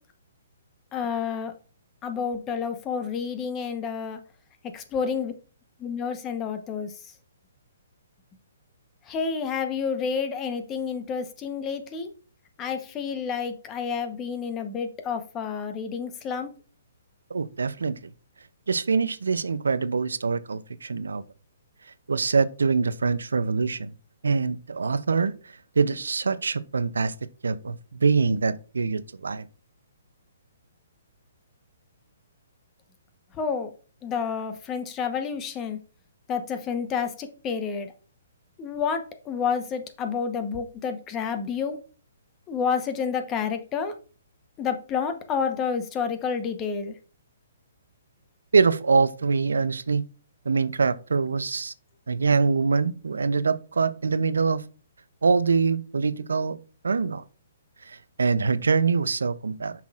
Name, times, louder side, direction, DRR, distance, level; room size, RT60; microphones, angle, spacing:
voice 1, 0.9-1.5 2.0-4.2 4.7-5.3 5.8-6.9 9.1-12.1 12.6-16.5 33.4-33.7 34.0-35.8 36.3-37.9 38.6-41.8 42.5-43.9 44.6-46.9, left 6 dB, 20° left, 0.9 m, -29 dB
voice 2, 17.3-18.0 18.7-21.2 22.1-23.9 24.2-25.3 25.8-27.1 27.4-29.5 48.5-50.0 50.5-51.7 52.1-54.6 55.2-56.6 56.8-57.2 57.9-59.7, right 4 dB, 85° right, 0.5 m, -24 dB
7.3 x 5.8 x 2.4 m
hypercardioid pair, 145°, 0 cm